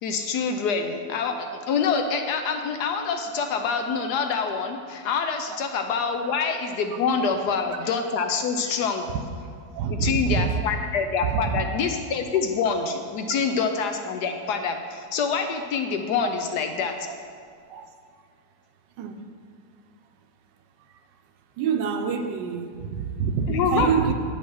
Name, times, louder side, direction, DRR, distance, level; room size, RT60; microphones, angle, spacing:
voice 1, 0.0-9.1 9.9-17.1 23.5-23.9, left 5 dB, 70° left, 6 dB, 1.0 m, -26 dB
voice 2, 9.7-10.6 11.2-11.6 13.6-13.7 15.6-15.7 16.2-16.3 17.1-17.2 17.7-17.9 19.0-19.2 21.6-24.1, right 6 dB, 75° right, 6 dB, 1.2 m, -26 dB
8.4 x 5.4 x 6.2 m, 2.1 s
omnidirectional pair, 2.0 m